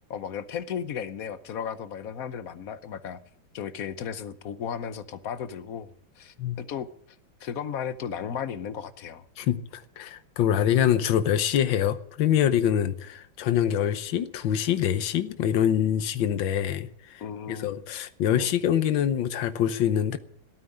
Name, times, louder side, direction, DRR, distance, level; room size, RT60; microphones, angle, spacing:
voice 1, 0.1-3.2 3.5-5.9 6.2-6.9 7.4-9.2 17.2-18.0 18.3-18.5, left 8 dB, 55° left, 1.0 m, -35 dB
voice 2, 9.4-17.2 17.5-20.2, left 10 dB, 75° left, 1.7 m, -25 dB
15.5 x 9.1 x 9.9 m
omnidirectional pair, 2.1 m